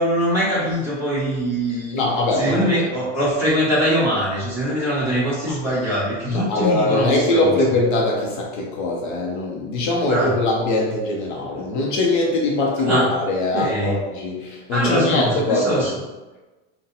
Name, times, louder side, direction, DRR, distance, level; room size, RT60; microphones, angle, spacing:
voice 1, 0.0-2.0 2.3-7.6 10.1-10.3 12.8-13.0 13.5-14.0 14.7-15.9, equal, 5° right, -11 dB, 1.2 m, -22 dB
voice 2, 1.9-2.7 5.0-5.1 6.2-15.9, left 2 dB, 55° left, -1 dB, 0.7 m, -22 dB
3.9 x 2.2 x 4.1 m, 1.2 s
supercardioid pair, 180°, 30 cm